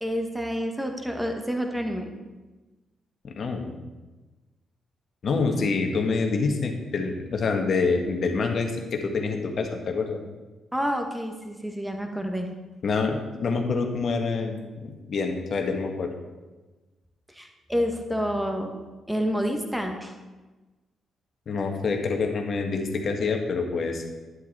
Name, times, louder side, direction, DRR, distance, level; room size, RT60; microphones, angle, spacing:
voice 1, 0.0-2.1 10.7-12.5 17.3-20.1, equal, 5° right, 3 dB, 1.9 m, -29 dB
voice 2, 3.2-3.7 5.2-10.2 12.8-16.1 21.5-24.0, left 4 dB, 55° left, 3 dB, 1.7 m, -26 dB
11.5 x 9.7 x 4.2 m, 1.2 s
hypercardioid pair, 40°, 0 cm